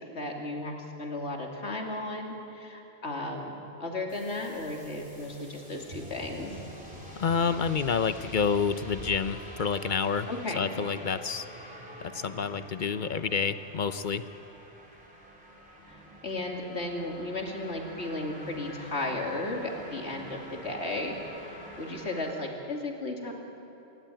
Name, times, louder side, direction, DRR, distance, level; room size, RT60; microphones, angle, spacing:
voice 1, 0.1-0.7 1.0-6.6 10.3-10.6 15.9-21.2 21.4-23.3, left 2 dB, 75° left, 1 dB, 2.8 m, -35 dB
sound 1, 4.1-22.3, equal, 5° right, 4.2 m, -47 dB
sound 2, 5.8-9.3 9.7-9.9, equal, 45° right, 3.7 m, -47 dB
voice 2, 7.2-10.3 10.6-11.5 12.0-14.3, left 6 dB, 50° left, 12 dB, 0.8 m, -28 dB
28.0 x 13.5 x 9.1 m, 2.9 s
omnidirectional pair, 1.1 m